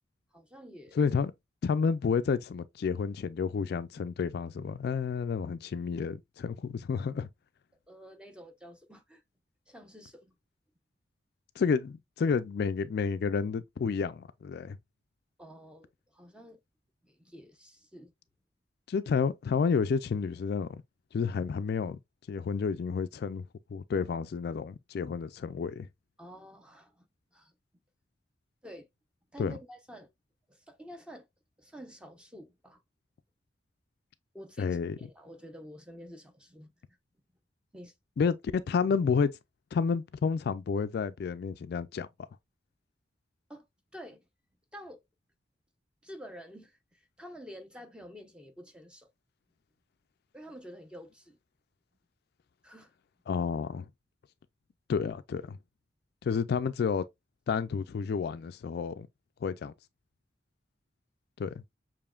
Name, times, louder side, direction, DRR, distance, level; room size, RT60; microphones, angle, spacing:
voice 1, 0.3-1.0 7.9-9.2 9.7-10.3 15.4-16.6 17.0-18.1 26.2-27.5 28.6-28.9 29.3-30.1 30.5-31.3 31.6-32.8 34.3-36.7 37.7-37.9 43.5-43.6 43.9-44.3 44.7-45.0 46.0-49.1 50.3-51.4 52.6-52.9, equal, 5° right, 0.7 m, -49 dB
voice 2, 1.0-1.3 1.6-7.3 11.6-14.8 18.9-20.7 21.1-22.0 22.3-23.4 23.7-25.9 29.4-29.6 34.6-35.0 38.2-39.3 39.7-42.1 53.3-53.8 54.9-55.6 56.2-57.0 57.5-59.1 59.4-59.7 61.4-61.5, left 5 dB, 60° left, 0.3 m, -30 dB
6.8 x 3.0 x 2.3 m
head